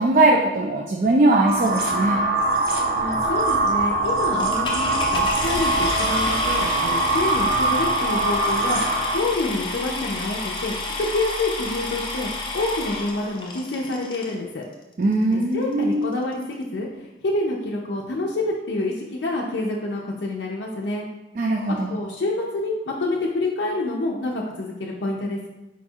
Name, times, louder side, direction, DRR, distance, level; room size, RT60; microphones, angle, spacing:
voice 1, 0.0-2.2 15.0-16.2 21.4-22.0, right 2 dB, 45° right, 0 dB, 0.3 m, -20 dB
sound 1, 1.3-9.4, right 2 dB, 65° right, 0.8 m, -23 dB
voice 2, 2.9-8.8 9.1-14.6 15.3-21.1 21.9-25.5, left 2 dB, 90° left, -2 dB, 0.5 m, -27 dB
sound 2, 4.4-14.3 15.1-15.2 15.7-15.8 16.0-16.3, left 2 dB, 25° left, 0.5 m, -30 dB
4.6 x 2.3 x 4.3 m, 1.1 s
head